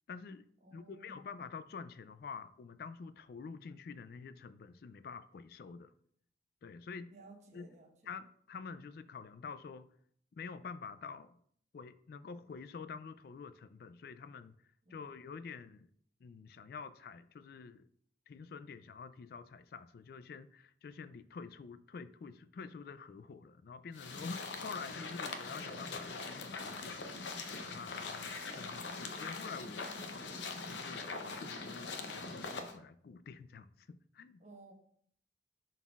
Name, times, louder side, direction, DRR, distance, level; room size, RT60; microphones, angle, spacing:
voice 1, 0.1-5.9 6.6-7.1 7.5-7.7 8.0-9.9 10.3-11.4 11.7-14.6 14.9-15.9 16.2-17.9 18.3-34.4, left 5 dB, 55° left, 0.3 m, -48 dB
voice 2, 0.6-1.2 7.1-7.9 14.9-15.0 29.4-30.3 34.4-34.7, right 2 dB, 40° right, 1.1 m, -56 dB
sound 1, 23.9-32.8, left 3 dB, 85° left, 0.7 m, -42 dB
11.0 x 4.0 x 2.4 m
head